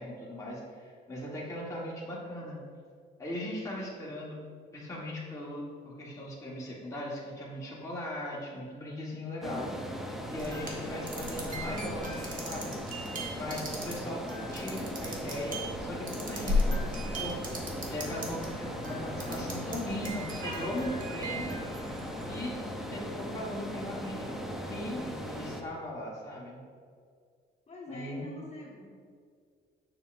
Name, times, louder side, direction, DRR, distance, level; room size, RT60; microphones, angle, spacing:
voice 1, 0.0-2.6 3.2-4.4 4.7-9.7 10.3-13.1 13.3-17.4 17.9-21.6 22.3-24.4 24.6-26.6 27.9-28.3, left 1 dB, 15° left, -6 dB, 1.3 m, -39 dB
voice 2, 9.4-9.9 19.1-19.8 27.7-28.9, left 1 dB, 35° left, -4 dB, 1.3 m, -44 dB
sound 1, 9.4-25.6, equal, ahead, 0.6 m, -38 dB
sound 2, 10.4-18.5 18.8-19.8 20.0-22.4, left 1 dB, 45° right, 1.3 m, -36 dB
sound 3, 16.2-22.5, right 1 dB, 85° right, 1.5 m, -45 dB
6.7 x 5.7 x 2.5 m, 2.1 s
cardioid pair, 90°, 20 cm